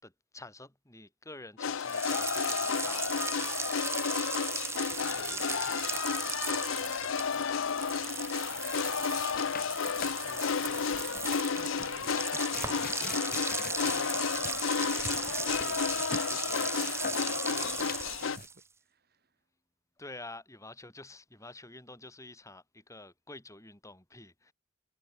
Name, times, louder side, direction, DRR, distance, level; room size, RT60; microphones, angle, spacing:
voice 1, 0.0-3.8 5.1-6.4 6.8-7.4 20.0-24.5, left 2 dB, 15° left, 4.5 m, -49 dB
sound 1, 1.6-18.4, left 6 dB, 75° left, 0.6 m, -32 dB
sound 2, 1.8-18.6, right 5 dB, 15° right, 0.8 m, -37 dB
sound 3, 4.8-18.5, left 5 dB, 45° left, 2.2 m, -46 dB
voice 2, 5.0-5.8 8.4-9.8 10.0-19.3, right 3 dB, 50° right, 2.5 m, -52 dB
head